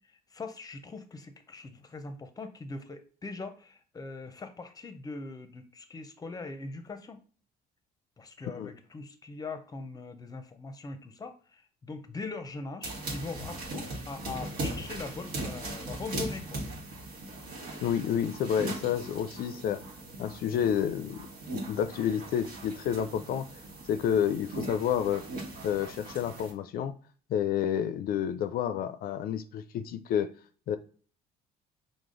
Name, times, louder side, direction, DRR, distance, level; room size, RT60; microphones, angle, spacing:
voice 1, 0.3-7.2 8.2-16.6, left 3 dB, 20° left, 0.6 m, -41 dB
sound 1, 12.8-26.5, right 2 dB, 60° right, 1.2 m, -39 dB
voice 2, 17.8-19.8 20.2-21.3 21.5-23.5 23.9-25.2 25.6-26.9 27.3-30.3 30.7-30.8, left 9 dB, 60° left, 0.4 m, -29 dB
4.9 x 2.0 x 3.7 m
cardioid pair, 110°, 17 cm